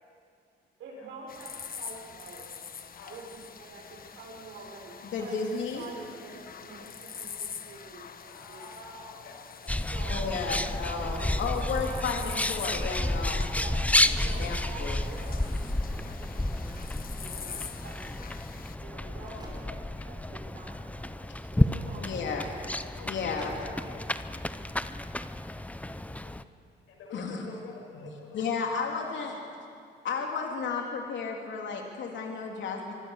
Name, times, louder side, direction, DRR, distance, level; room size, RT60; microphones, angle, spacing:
voice 1, 0.8-2.6 3.1-8.9 9.6-10.3 11.0-12.6 13.5-13.9 14.2-16.7 17.1-18.3 18.8-19.7 20.0-22.5, right 3 dB, 85° right, -1 dB, 6.2 m, -47 dB
sound 1, 1.3-18.8, left 7 dB, 45° left, 1.4 m, -45 dB
voice 2, 5.1-5.8 10.1-13.4 14.1-15.0 22.0-22.4 23.0-23.6 27.1-27.5 27.9-28.1 28.3-29.4 30.0-32.9, left 5 dB, 70° left, 1 dB, 3.5 m, -33 dB
voice 3, 8.2-9.9 19.7-20.1 22.3-22.4 22.9-24.1 24.4-24.8 25.8-26.4 26.9-28.4, left 3 dB, 85° left, 2 dB, 5.5 m, -48 dB
Bird, 9.7-26.4, left 1 dB, 5° left, 0.8 m, -31 dB
sound 2, 15.1-16.4 17.4-18.2 18.9-19.0 19.3-20.1 21.3-21.8 23.3-23.9, right 1 dB, 20° right, 5.5 m, -51 dB
24.5 x 24.0 x 6.7 m, 2.3 s
cardioid pair, 90°, 20 cm